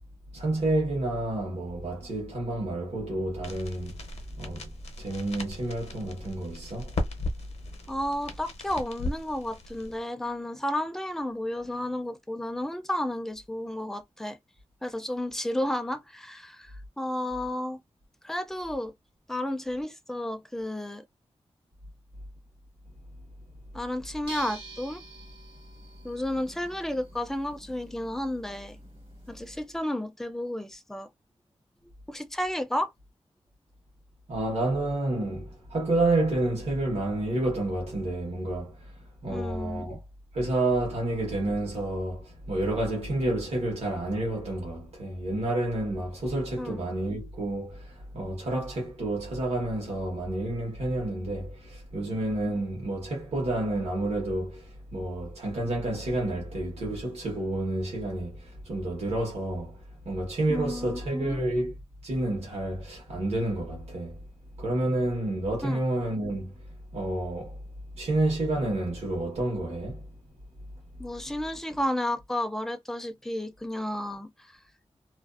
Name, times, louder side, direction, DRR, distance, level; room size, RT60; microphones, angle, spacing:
voice 1, 0.3-4.0 4.4-4.7 5.0-7.0 34.3-38.9 39.2-40.0 40.3-61.7 62.0-64.2 64.6-66.5 66.9-67.6 67.9-70.0, right 1 dB, 75° right, 1.1 m, -29 dB
sound 1, 3.4-10.0, left 2 dB, 75° left, 0.7 m, -37 dB
voice 2, 7.9-14.4 14.8-17.8 18.2-18.9 19.3-21.0 23.7-25.0 26.0-28.8 29.3-31.1 32.1-32.9 39.3-39.9 46.6-46.8 60.5-61.4 65.6-65.8 71.0-74.6, left 1 dB, 5° left, 0.4 m, -32 dB
sound 2, 24.2-29.6, right 1 dB, 50° right, 1.0 m, -46 dB
2.5 x 2.2 x 2.4 m
wide cardioid pair, 125°, 11 cm